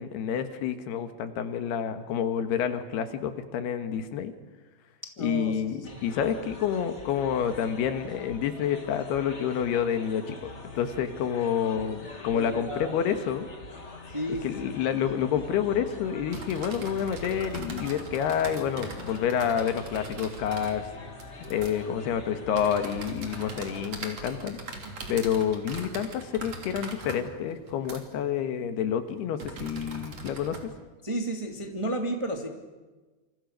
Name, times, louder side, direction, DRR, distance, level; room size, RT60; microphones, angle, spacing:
voice 1, 0.0-4.3 5.2-10.5 10.8-13.5 14.4-20.9 21.5-24.6 25.1-30.6, left 8 dB, 85° left, 8 dB, 3.6 m, -28 dB
voice 2, 5.2-5.6 5.9-6.0 12.3-12.9 14.1-14.8 31.0-32.5, right 1 dB, 10° right, 3 dB, 1.6 m, -32 dB
sound 1, 5.8-23.9, left 2 dB, 20° left, 2.2 m, -44 dB
sound 2, 15.9-30.6, right 3 dB, 40° right, 3.9 m, -42 dB
27.0 x 26.5 x 6.5 m, 1.2 s
omnidirectional pair, 4.6 m